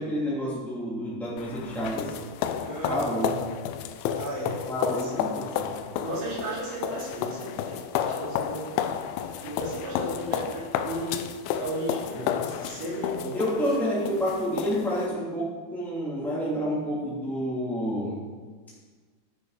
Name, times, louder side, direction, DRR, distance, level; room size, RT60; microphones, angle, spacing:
voice 1, 0.0-2.1 2.9-3.4 4.7-5.8 12.1-12.5 13.3-18.2, equal, ahead, -7 dB, 0.6 m, -29 dB
sound 1, 1.4-15.1, left 9 dB, 85° left, 2.8 m, -32 dB
voice 2, 2.6-3.0 4.1-4.6 5.0-5.3 6.0-8.7 9.2-13.3 13.6-13.7, right 1 dB, 65° right, -6 dB, 6.2 m, -35 dB
14.0 x 10.5 x 5.1 m, 1.4 s
omnidirectional pair, 5.8 m